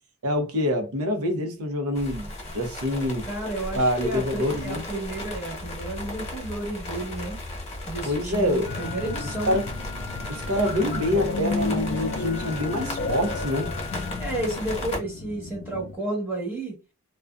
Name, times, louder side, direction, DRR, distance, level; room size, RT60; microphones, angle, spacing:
voice 1, 0.2-3.3 3.7-4.8 8.0-8.7 9.5-9.7 10.3-13.7, left 1 dB, 80° right, 0.7 m, -26 dB
sound 1, 2.0-15.0, left 1 dB, 30° left, 1.0 m, -36 dB
voice 2, 3.2-7.4 7.9-9.6 14.2-16.7, right 1 dB, 10° right, 1.0 m, -32 dB
sound 2, 8.7-16.0, left 3 dB, 50° left, 0.3 m, -33 dB
2.5 x 2.3 x 2.2 m
head